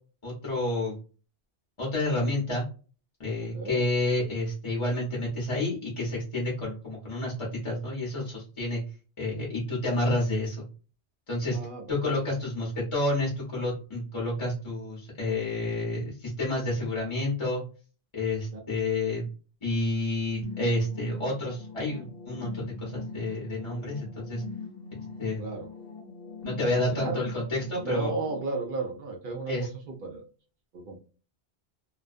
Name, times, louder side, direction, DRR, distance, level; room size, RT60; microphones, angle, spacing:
voice 1, 0.2-1.0 1.8-2.6 3.2-7.3 7.6-8.8 9.2-10.6 11.3-11.6 11.9-17.6 18.1-19.3 19.6-24.4 25.2-25.4 26.4-28.1 29.5-29.7, left 2 dB, 30° left, -4 dB, 0.8 m, -29 dB
voice 2, 3.4-3.8 11.5-12.2 25.4-25.7 26.9-27.2 27.8-30.2 30.7-31.0, right 3 dB, 60° right, 2 dB, 0.6 m, -34 dB
sound 1, 20.4-28.4, left 4 dB, 60° left, 0.9 m, -42 dB
2.3 x 2.2 x 2.4 m, 0.37 s
omnidirectional pair, 1.1 m